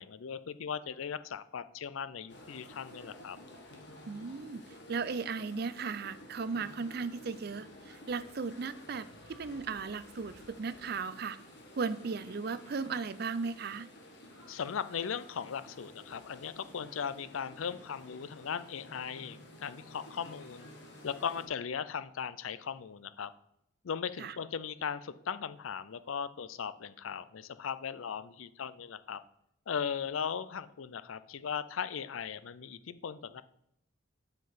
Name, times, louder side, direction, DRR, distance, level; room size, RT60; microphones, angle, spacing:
voice 1, 0.0-3.4 14.5-20.7 21.0-23.3 23.8-29.2 29.7-33.4, left 7 dB, 85° left, 15 dB, 0.5 m, -38 dB
sound 1, 2.3-21.5, left 1 dB, 55° left, 1.5 m, -52 dB
voice 2, 4.1-4.6 4.9-11.4 11.8-13.9 24.2-24.4, right 5 dB, 50° right, 15 dB, 0.4 m, -36 dB
7.8 x 5.9 x 5.1 m, 0.77 s
head